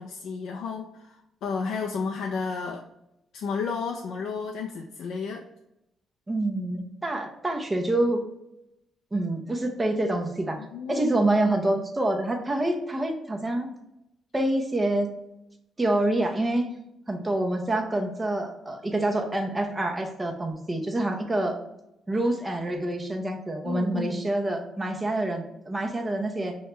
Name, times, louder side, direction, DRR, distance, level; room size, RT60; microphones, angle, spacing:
voice 1, 0.0-2.8 3.3-5.4 10.6-11.1 23.6-24.3, left 5 dB, 75° left, 2 dB, 0.4 m, -32 dB
voice 2, 6.3-8.2 9.1-10.6 10.9-13.7 14.3-15.1 15.8-16.7 17.1-21.6 22.1-26.6, right 1 dB, 15° right, 3 dB, 0.6 m, -26 dB
6.3 x 2.2 x 2.9 m, 0.86 s
cardioid pair, 145°, 0 cm